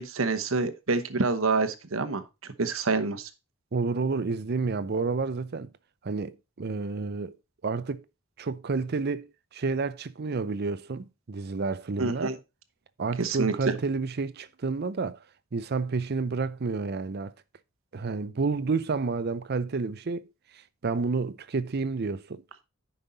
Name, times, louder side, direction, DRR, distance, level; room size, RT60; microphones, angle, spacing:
voice 1, 0.0-2.2 2.6-3.3 12.0-12.3 13.2-13.5, right 3 dB, 90° right, 1.0 m, -27 dB
voice 2, 3.7-5.7 6.0-7.4 7.6-8.0 8.4-12.4 13.0-15.2 15.5-17.3 17.9-22.4, right 4 dB, 55° right, 0.6 m, -30 dB
9.5 x 5.5 x 4.0 m
head